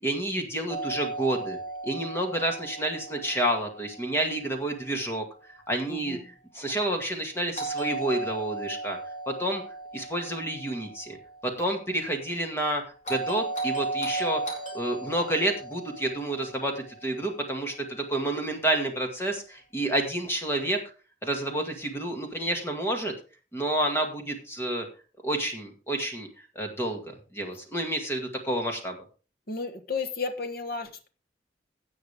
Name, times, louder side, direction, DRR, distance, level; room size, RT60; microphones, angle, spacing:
voice 1, 0.0-6.2 6.5-9.0 9.3-9.6 9.9-11.2 11.4-20.8 21.2-23.1 23.5-24.9 25.2-29.0, right 1 dB, 15° left, 2 dB, 2.1 m, -29 dB
Doorbell, 0.7-4.7 7.6-11.8 13.0-17.5, right 2 dB, 40° left, 4.2 m, -36 dB
voice 2, 5.9-6.3 29.5-31.1, left 4 dB, 55° left, 7 dB, 1.5 m, -33 dB
17.0 x 6.5 x 3.6 m, 0.35 s
head